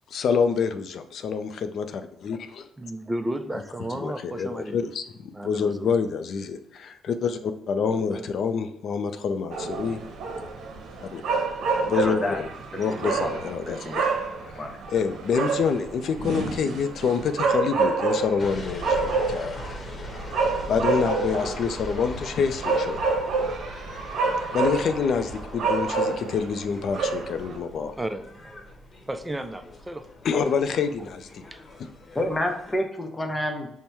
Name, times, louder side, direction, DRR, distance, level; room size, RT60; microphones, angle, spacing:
voice 1, 0.1-2.7 3.9-10.0 11.1-11.2 11.9-12.5 12.8-14.0 14.9-19.6 20.7-23.0 24.3-27.9 30.2-31.4, left 6 dB, 65° left, 8 dB, 0.4 m, -27 dB
voice 2, 2.8-4.8 5.3-5.9 7.9-8.3 27.8-28.6 29.1-30.1 30.8-30.9 31.5-31.6, right 1 dB, 15° right, 9 dB, 0.4 m, -33 dB
sound 1, 9.5-27.6, right 4 dB, 75° right, 0.8 m, -28 dB
voice 3, 11.9-12.4 12.9-13.3 13.7-13.9 14.4-14.8 32.1-33.7, left 1 dB, 20° left, 4 dB, 0.8 m, -29 dB
sound 2, 18.4-32.8, left 1 dB, 40° left, 0.9 m, -41 dB
5.5 x 2.1 x 4.5 m, 0.80 s
cardioid pair, 90°, 0 cm